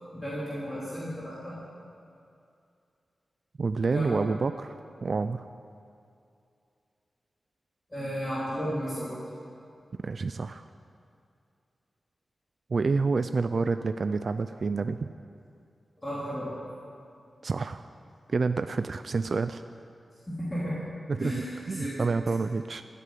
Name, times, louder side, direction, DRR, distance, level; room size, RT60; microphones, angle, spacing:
voice 1, 0.1-1.5 3.9-4.2 7.9-9.1 16.0-16.5 20.3-20.7 21.2-21.9, equal, 15° left, -9 dB, 3.4 m, -33 dB
voice 2, 3.6-5.5 10.0-10.6 12.7-15.1 17.4-17.9 18.3-19.6 21.2-22.8, right 4 dB, 50° right, 10 dB, 0.4 m, -28 dB
15.5 x 8.4 x 9.4 m, 2.5 s
wide cardioid pair, 160°, 0 cm